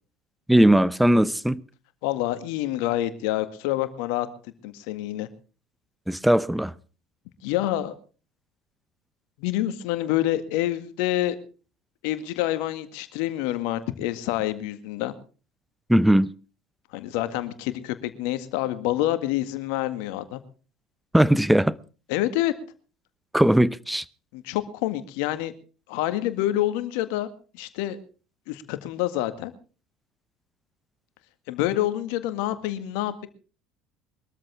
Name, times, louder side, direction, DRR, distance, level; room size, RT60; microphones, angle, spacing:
voice 1, 0.5-1.6 6.1-6.7 15.9-16.3 21.1-21.8 23.3-24.0, right 1 dB, 5° right, 0.8 m, -19 dB
voice 2, 2.0-4.3 4.6-5.3 7.4-7.9 9.4-11.4 12.0-15.1 16.9-20.4 22.1-22.5 24.3-25.5 25.9-27.3 27.5-28.0 28.5-29.5 31.5-33.3, left 14 dB, 70° left, 1.8 m, -27 dB
22.5 x 13.5 x 3.5 m
hypercardioid pair, 70°, 0 cm